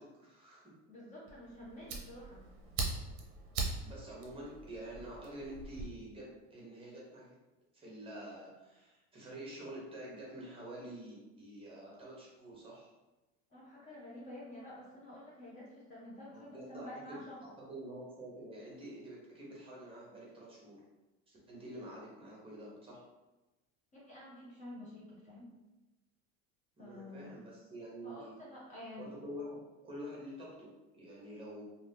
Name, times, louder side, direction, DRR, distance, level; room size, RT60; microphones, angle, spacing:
voice 1, 0.0-0.7 3.8-7.4 7.7-12.9 16.3-20.8 21.3-23.0 26.8-28.3 28.9-29.6 29.8-31.6, right 1 dB, 15° right, -4 dB, 0.9 m, -48 dB
voice 2, 0.9-2.5 13.5-17.4 23.9-25.5 26.8-27.3 28.0-29.1, left 1 dB, 25° left, -6 dB, 0.6 m, -49 dB
Fire, 1.3-5.9, right 3 dB, 45° right, 0.6 m, -41 dB
2.7 x 2.4 x 3.4 m, 1.1 s
cardioid pair, 145°, 32 cm